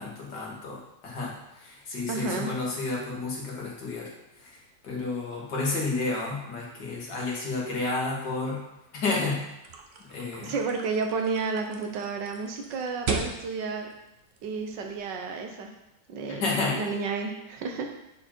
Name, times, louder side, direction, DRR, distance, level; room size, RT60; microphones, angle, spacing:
voice 1, 0.0-4.1 4.4-4.6 4.8-8.6 8.9-9.4 10.0-10.5 16.3-16.8, left 3 dB, 80° left, -4 dB, 2.5 m, -31 dB
voice 2, 2.1-2.5 10.4-13.9 14.4-15.7 16.1-16.5 16.7-17.9, right 4 dB, 90° right, 4 dB, 1.7 m, -31 dB
sound 1, 9.6-15.0, right 4 dB, 45° right, 1.0 m, -37 dB
9.4 x 4.8 x 4.4 m, 0.90 s
omnidirectional pair, 1.9 m